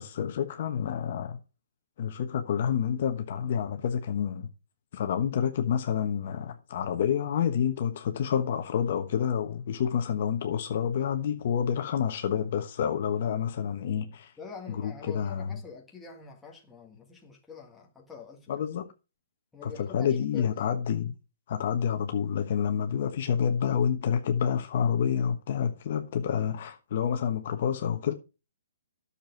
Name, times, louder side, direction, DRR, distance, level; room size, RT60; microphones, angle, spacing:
voice 1, 0.0-1.4 2.0-4.5 4.9-14.3 14.7-15.6 18.5-18.8 19.6-21.2 21.5-28.1, left 8 dB, 45° left, 1.2 m, -28 dB
voice 2, 14.4-18.7 19.5-20.7, left 5 dB, 5° left, 1.7 m, -46 dB
10.5 x 7.0 x 4.6 m
hypercardioid pair, 160°, 0 cm